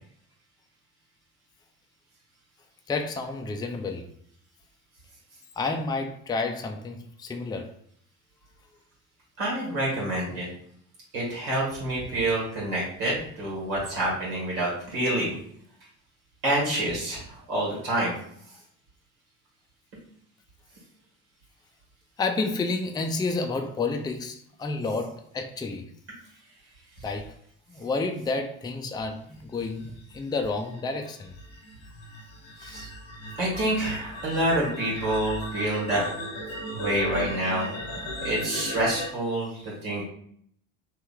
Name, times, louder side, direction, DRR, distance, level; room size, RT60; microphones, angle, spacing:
voice 1, 2.9-4.1 5.6-7.7 22.2-25.9 27.0-27.3 27.7-31.3 32.7-32.8, left 3 dB, 10° left, 0.4 m, -30 dB
voice 2, 9.4-10.5 11.1-15.3 16.4-18.1 32.6-32.9 33.4-36.1 36.7-40.0, right 1 dB, 80° right, 1.5 m, -27 dB
sound 1, 29.8-39.1, equal, 75° left, 1.1 m, -37 dB
3.2 x 2.7 x 3.4 m
hypercardioid pair, 50°, 41 cm